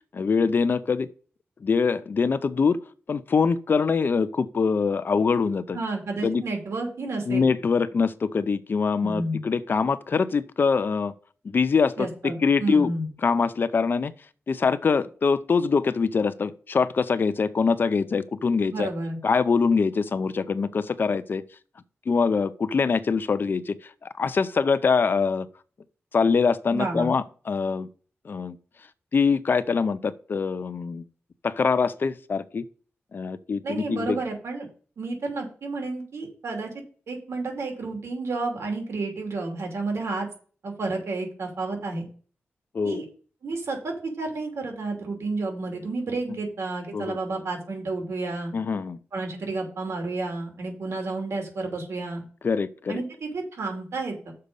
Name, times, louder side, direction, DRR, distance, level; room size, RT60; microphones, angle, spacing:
voice 1, 0.1-1.1 1.6-2.8 3.1-5.8 6.2-6.4 7.3-11.1 11.4-12.9 13.2-14.1 14.5-18.9 19.2-21.4 22.1-25.5 26.1-27.9 28.2-28.6 29.1-31.0 31.4-32.6 33.1-34.2 42.7-43.0 46.3-46.4 46.9-47.2 48.5-49.0 52.4-53.0, left 5 dB, 50° left, 0.5 m, -24 dB
voice 2, 5.7-7.5 9.0-9.4 12.0-13.1 18.7-19.2 26.7-27.1 33.6-34.7 35.0-36.7 37.1-40.3 40.6-42.1 42.8-43.0 43.4-48.5 49.1-52.2 52.9-54.3, right 3 dB, 80° right, 2.8 m, -31 dB
6.7 x 5.1 x 6.8 m
wide cardioid pair, 160°, 5 cm